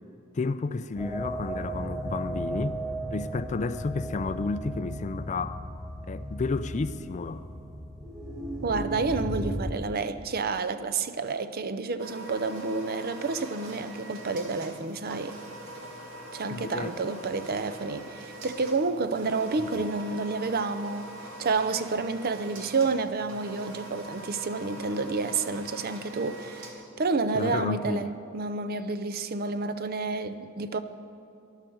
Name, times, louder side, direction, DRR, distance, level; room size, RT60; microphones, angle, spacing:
voice 1, 0.3-2.8 3.1-5.6 6.0-7.5 16.5-17.0 19.7-19.9 27.3-28.2, left 3 dB, 35° left, 0.4 m, -31 dB
sound 1, 1.0-9.7, right 1 dB, 15° right, 2.3 m, -35 dB
voice 2, 8.6-15.4 16.3-21.1 21.4-26.7 27.0-30.8, right 4 dB, 45° right, 0.6 m, -29 dB
sound 2, 12.0-26.7, right 1 dB, 70° right, 2.1 m, -43 dB
19.5 x 11.5 x 4.6 m
head